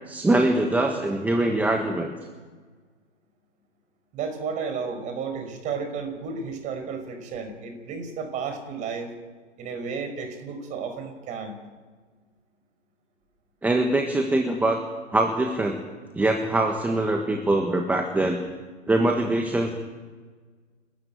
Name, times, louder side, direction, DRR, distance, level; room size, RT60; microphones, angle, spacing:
voice 1, 0.1-2.1 13.6-14.8 15.1-15.8 16.1-18.4 18.9-19.7, right 2 dB, 5° right, 3 dB, 1.5 m, -23 dB
voice 2, 4.1-9.1 9.6-11.6, right 5 dB, 20° right, 6 dB, 5.1 m, -32 dB
29.0 x 13.5 x 9.2 m, 1.5 s
hypercardioid pair, 135°, 37 cm